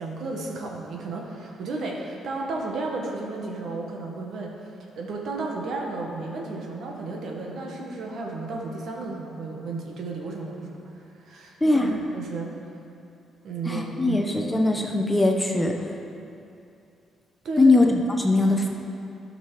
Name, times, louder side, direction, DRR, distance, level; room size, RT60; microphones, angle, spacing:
voice 1, 0.0-4.7 5.0-12.5 13.4-14.2 14.4-14.7 17.4-17.7, right 3 dB, 70° right, 0 dB, 1.6 m, -33 dB
voice 2, 11.6-12.0 13.7-15.7 17.6-18.7, left 2 dB, 10° left, 2 dB, 1.0 m, -21 dB
12.5 x 6.0 x 4.9 m, 2.6 s
cardioid pair, 90°, 0 cm